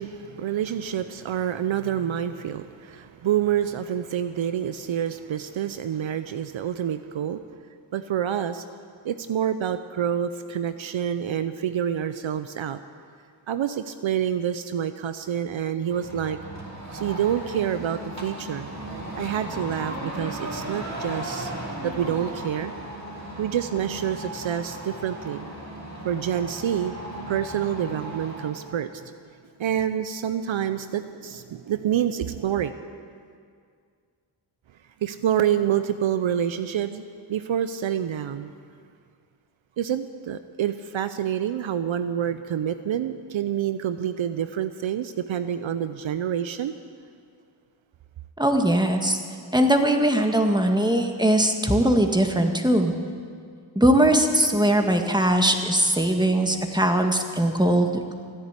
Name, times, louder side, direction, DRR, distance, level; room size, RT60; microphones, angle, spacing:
voice 1, 0.0-7.4 7.9-8.6 9.0-12.8 13.5-16.4 16.9-18.7 19.2-21.5 21.8-22.7 23.4-25.5 26.0-26.9 27.3-29.1 29.6-32.7 35.0-37.0 37.3-38.5 39.8-46.7, right 9 dB, 70° right, 11 dB, 0.7 m, -27 dB
sound 1, 15.8-28.7, right 1 dB, 35° right, 3.4 m, -36 dB
voice 2, 48.4-49.2 49.5-52.9 53.8-58.0, right 1 dB, 10° right, 4 dB, 1.9 m, -20 dB
16.0 x 10.5 x 8.3 m, 2.2 s
cardioid pair, 40°, 48 cm